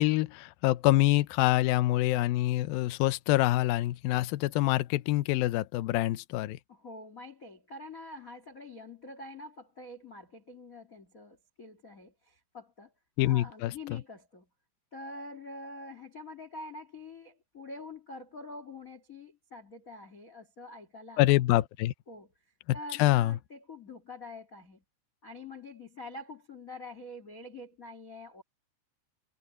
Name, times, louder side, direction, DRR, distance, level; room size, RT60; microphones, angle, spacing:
voice 1, 0.0-6.6 13.2-14.0 21.2-21.9 22.7-23.4, left 16 dB, 80° left, 2.2 m, -26 dB
voice 2, 6.7-12.9 13.2-14.5 14.9-21.2 22.1-22.3 22.7-24.8 25.2-28.4, left 2 dB, 50° left, 1.0 m, -46 dB
omnidirectional pair, 5.0 m